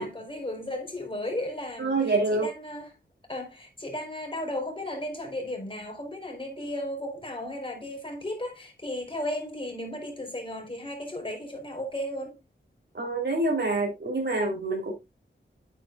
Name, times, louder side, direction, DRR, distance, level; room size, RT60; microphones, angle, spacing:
voice 1, 0.0-2.9 3.3-12.4, left 1 dB, 25° left, 4.4 m, -35 dB
voice 2, 1.8-2.5 12.9-14.9, right 2 dB, 60° right, 3.9 m, -26 dB
9.1 x 9.0 x 2.5 m
wide cardioid pair, 90°, 20 cm